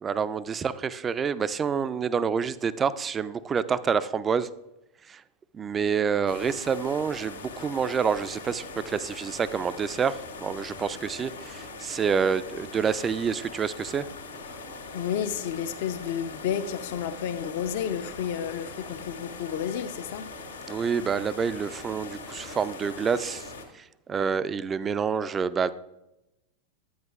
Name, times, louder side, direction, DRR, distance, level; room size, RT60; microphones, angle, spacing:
voice 1, 0.0-4.5 5.1-5.2 5.5-14.1 20.7-25.7, right 6 dB, 20° right, 0.3 m, -28 dB
sound 1, 6.3-23.6, left 3 dB, 75° left, 1.6 m, -41 dB
voice 2, 14.9-20.3, left 8 dB, 50° left, 0.5 m, -31 dB
9.5 x 9.2 x 2.4 m
figure-of-eight pair, 90°, 0 cm